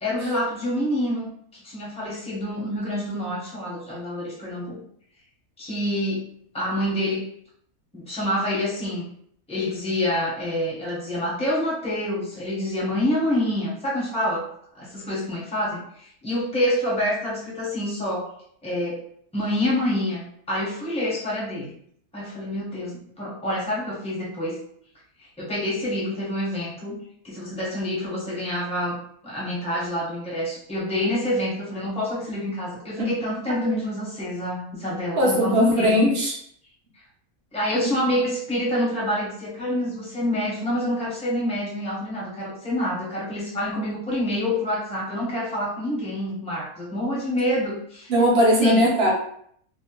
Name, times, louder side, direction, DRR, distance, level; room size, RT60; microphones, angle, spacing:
voice 1, 0.0-4.8 5.6-6.3 6.5-7.3 7.9-9.0 9.5-14.5 14.7-18.3 18.6-19.0 19.3-21.7 22.1-24.6 25.4-27.0 27.2-29.0 29.2-36.1 37.5-48.1 48.4-48.8, left 1 dB, 5° left, -7 dB, 0.7 m, -27 dB
voice 2, 35.2-36.3 37.7-37.9 48.1-49.1, equal, 50° right, -2 dB, 0.8 m, -19 dB
2.7 x 2.1 x 2.9 m, 0.65 s
omnidirectional pair, 1.6 m